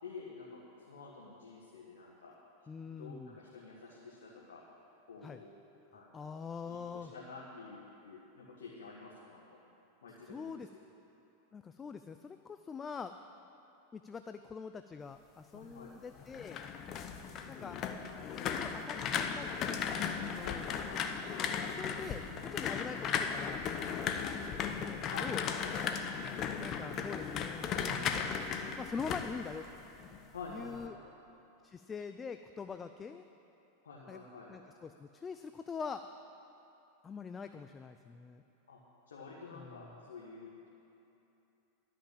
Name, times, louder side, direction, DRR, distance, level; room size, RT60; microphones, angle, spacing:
voice 1, 0.0-0.6 0.9-2.3 3.0-4.6 5.1-5.5 5.9-6.4 6.6-9.4 10.0-10.6 15.5-15.9 20.4-21.0 25.1-25.8 30.3-31.1 33.8-34.5 38.7-38.8 39.1-40.7, left 4 dB, 90° left, -5 dB, 1.6 m, -49 dB
voice 2, 2.7-3.3 5.2-5.4 6.1-7.1 10.3-10.7 11.5-13.1 13.9-16.6 17.5-17.8 18.4-19.8 20.2-20.8 21.6-23.6 24.3-25.4 26.6-27.9 28.8-29.7 30.5-31.0 31.6-33.3 34.1-34.2 34.5-36.0 37.0-38.4 39.5-39.8, left 5 dB, 20° left, 8 dB, 0.4 m, -44 dB
sound 1, 16.2-30.2 30.5-30.9, left 7 dB, 40° left, 0.8 m, -36 dB
12.5 x 5.8 x 8.6 m, 2.9 s
hypercardioid pair, 110°, 0 cm